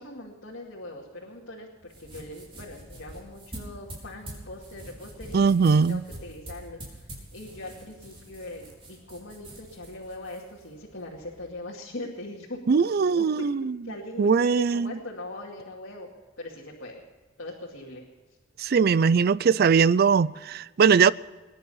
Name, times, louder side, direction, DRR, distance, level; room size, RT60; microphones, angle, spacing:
voice 1, 0.0-13.5 13.8-16.1 16.4-17.0 17.4-18.0, left 1 dB, 70° left, 2.3 m, -41 dB
sound 1, 1.8-11.5, right 1 dB, 30° right, 4.5 m, -45 dB
voice 2, 5.3-6.0 12.7-13.6 14.2-14.9 18.6-21.1, right 5 dB, 50° right, 0.4 m, -20 dB
21.0 x 10.5 x 5.5 m
head